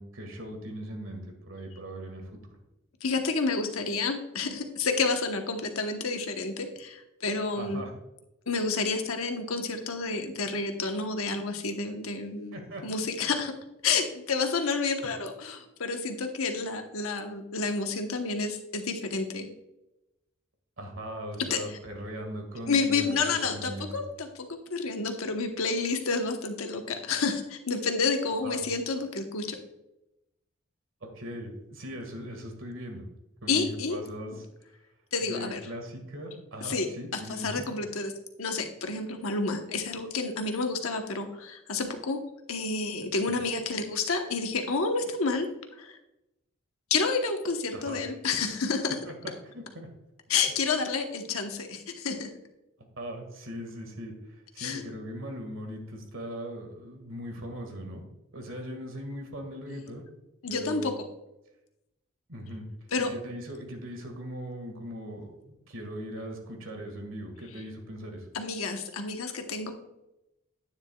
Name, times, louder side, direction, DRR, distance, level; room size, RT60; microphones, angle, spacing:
voice 1, 0.0-2.4 7.5-7.9 12.5-12.9 15.0-15.1 20.8-24.0 28.4-28.6 31.0-33.0 33.4-34.3 35.2-37.6 47.7-48.0 49.1-49.9 53.0-58.0 58.3-60.0 60.5-61.0 62.3-62.6 63.0-68.3, equal, 70° right, 4 dB, 1.8 m, -39 dB
voice 2, 3.0-7.8 8.5-12.6 12.8-13.5 13.8-19.5 21.5-21.6 22.7-29.6 33.5-34.0 35.1-35.6 36.6-36.9 37.1-38.1 38.4-42.2 42.5-45.5 45.8-46.0 46.9-49.0 50.3-52.3 54.6-54.8 60.4-61.0 62.9-63.1 68.3-69.7, left 4 dB, 85° left, 4 dB, 1.1 m, -29 dB
10.0 x 9.4 x 2.3 m, 0.91 s
head